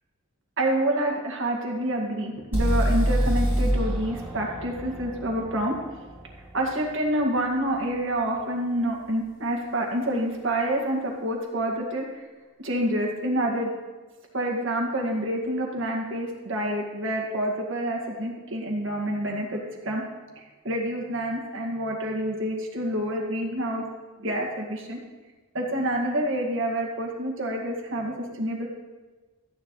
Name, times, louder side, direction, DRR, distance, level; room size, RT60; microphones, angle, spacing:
voice 1, 0.6-5.7 6.5-12.0 12.6-13.7 14.3-20.0 20.4-23.8 24.2-25.0 25.5-28.7, right 1 dB, 60° right, -1 dB, 1.9 m, -27 dB
sound 1, 2.5-6.5, right 1 dB, 10° right, 2.3 m, -26 dB
14.0 x 9.9 x 3.2 m, 1.3 s
head